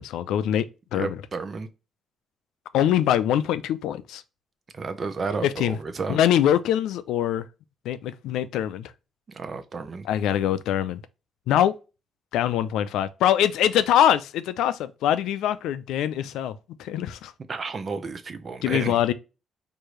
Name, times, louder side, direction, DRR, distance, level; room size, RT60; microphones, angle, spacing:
voice 1, 0.0-1.2 2.7-4.2 5.4-5.8 6.1-7.4 7.9-8.9 10.0-11.0 11.5-11.7 12.3-17.3 18.6-19.1, left 10 dB, 85° left, 0.4 m, -23 dB
voice 2, 0.9-1.7 4.7-6.2 9.3-10.1 17.5-19.0, right 4 dB, 40° right, 0.7 m, -32 dB
4.6 x 2.7 x 3.1 m
cardioid pair, 90°, 0 cm